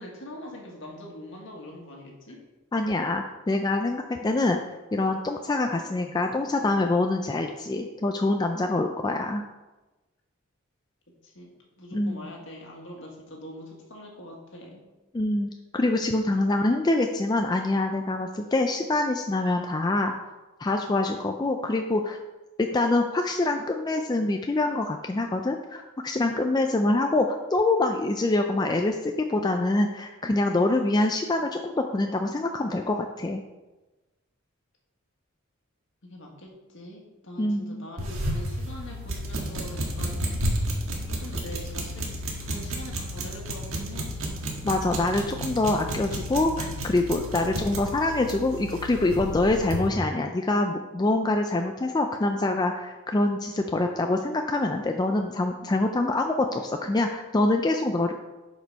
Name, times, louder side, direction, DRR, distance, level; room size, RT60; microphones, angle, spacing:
voice 1, 0.0-2.4 11.2-14.9 31.4-31.5 36.0-40.6 41.0-44.3, equal, 60° left, -1 dB, 1.8 m, -43 dB
voice 2, 2.7-4.6 4.9-9.4 11.9-12.2 15.1-20.1 20.6-22.2 22.6-33.4 37.4-37.9 44.6-58.1, left 2 dB, 20° left, 4 dB, 0.3 m, -25 dB
sound 1, 38.0-49.9, equal, 70° right, 1.6 m, -32 dB
7.9 x 5.1 x 5.4 m, 1.1 s
head